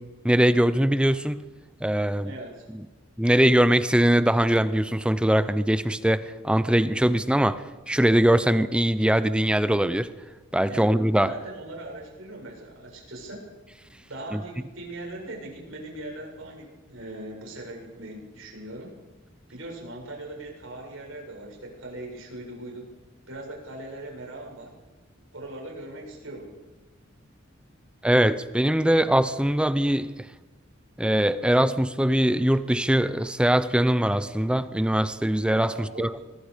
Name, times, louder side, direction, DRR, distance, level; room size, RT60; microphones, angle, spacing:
voice 1, 0.2-1.4 1.8-2.3 2.7-2.8 3.2-10.1 10.5-11.3 14.3-14.4 28.0-30.3 31.0-36.2, right 1 dB, 5° right, 0.6 m, -22 dB
voice 2, 2.2-2.6 10.7-10.9 11.2-13.4 14.1-18.9 19.5-22.9 23.3-24.7 25.3-26.5 35.6-36.2, right 1 dB, 75° right, 7.1 m, -40 dB
25.5 x 21.5 x 5.2 m
head